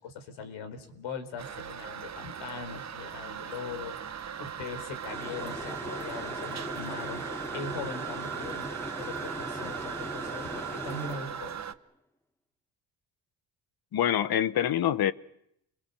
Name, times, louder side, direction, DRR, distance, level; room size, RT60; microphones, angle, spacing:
voice 1, 0.0-4.0 4.4-8.7 9.0-11.6, left 4 dB, 70° left, 4.4 m, -40 dB
Toilet flush, 1.4-11.7, right 8 dB, 35° right, 1.2 m, -38 dB
sound 1, 5.1-11.7, equal, 5° left, 1.6 m, -40 dB
voice 2, 13.9-15.1, left 10 dB, 50° left, 1.1 m, -25 dB
29.0 x 22.0 x 6.9 m
supercardioid pair, 85°, 47 cm